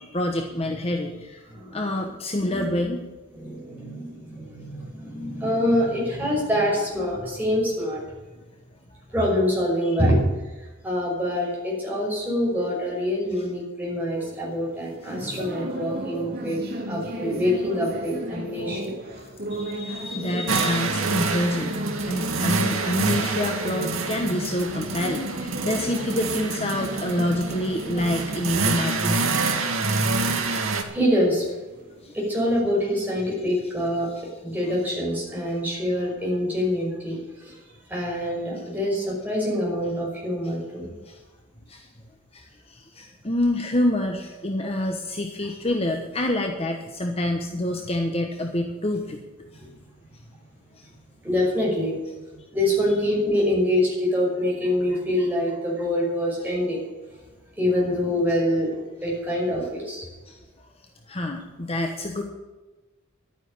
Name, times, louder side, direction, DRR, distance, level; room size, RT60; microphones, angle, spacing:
voice 1, 0.0-1.5 1.7-3.0 9.8-10.0 15.0-15.2 19.5-21.8 22.1-29.2 32.0-32.2 40.4-40.5 41.0-41.2 41.7-41.9 42.3-49.2 50.8-50.9 60.2-60.4 61.1-62.2, left 1 dB, 30° left, 3 dB, 1.2 m, -27 dB
voice 2, 1.5-2.0 2.4-2.8 3.3-8.0 9.1-10.2 10.8-16.6 16.9-18.8 30.9-31.4 32.1-34.1 34.4-37.6 37.9-40.9 49.6-49.7 51.2-56.8 57.6-58.7 59.0-60.1, left 1 dB, 10° right, -4 dB, 5.9 m, -25 dB
sound 1, 14.2-32.6, right 1 dB, 50° right, 2.6 m, -36 dB
sound 2, 20.5-30.8, right 3 dB, 75° right, 2.0 m, -27 dB
12.0 x 9.5 x 8.8 m, 1.2 s
head